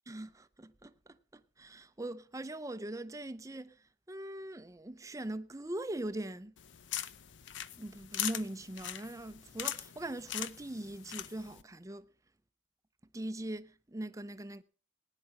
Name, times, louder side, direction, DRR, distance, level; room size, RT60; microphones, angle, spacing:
voice 1, 0.1-6.5 7.8-12.1 13.1-14.6, right 1 dB, 15° right, 0.6 m, -41 dB
sound 1, 6.6-11.6, left 11 dB, 70° left, 0.7 m, -41 dB
18.0 x 10.0 x 5.3 m
head